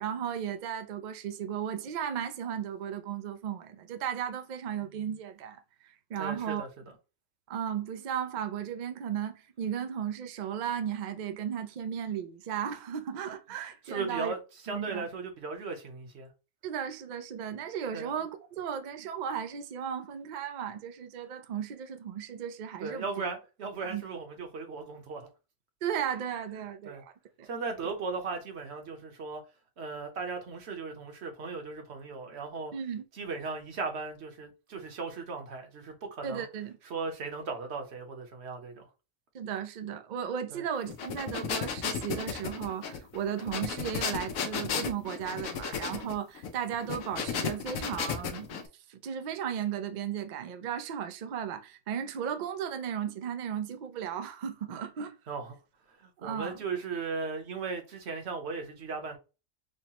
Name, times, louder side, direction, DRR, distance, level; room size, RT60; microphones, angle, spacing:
voice 1, 0.0-6.6 7.5-14.3 14.7-15.1 16.6-23.0 23.9-24.0 25.8-27.1 27.4-27.5 32.7-33.0 36.2-36.8 39.3-48.6 48.9-55.1 56.2-56.6, right 8 dB, 85° right, 0.4 m, -35 dB
voice 2, 6.2-6.9 13.8-14.4 14.6-16.3 17.9-18.1 22.8-25.3 26.8-27.0 27.4-29.4 29.8-32.7 33.1-36.5 36.8-38.9 40.5-40.7 55.3-55.6 55.9-59.2, right 4 dB, 55° right, 1.0 m, -37 dB
sound 1, 40.9-48.7, left 6 dB, 85° left, 1.0 m, -34 dB
5.4 x 2.1 x 2.9 m
omnidirectional pair, 1.4 m